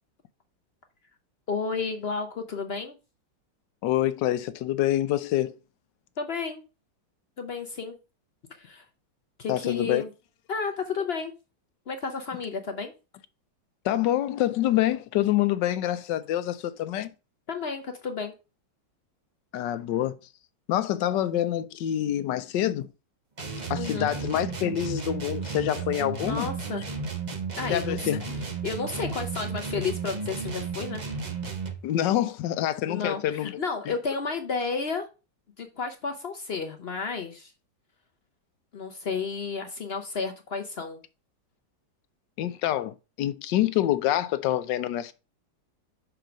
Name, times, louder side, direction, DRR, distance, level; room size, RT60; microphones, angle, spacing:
voice 1, 1.5-3.0 6.2-6.6 7.4-8.0 8.6-8.8 9.4-10.1 10.5-11.3 11.9-12.9 17.5-18.3 23.7-24.2 26.2-26.8 27.6-28.1 28.6-31.0 32.9-35.1 35.6-37.5 38.7-41.0, left 5 dB, 60° left, 0.6 m, -32 dB
voice 2, 3.8-5.5 9.5-10.0 13.8-17.1 19.5-20.2 20.7-22.9 23.7-26.5 27.7-28.3 31.8-33.6 33.9-34.0 42.4-45.1, left 12 dB, 80° left, 1.3 m, -26 dB
sound 1, 23.4-31.8, right 4 dB, 35° right, 0.7 m, -33 dB
5.9 x 4.6 x 5.1 m
omnidirectional pair, 1.9 m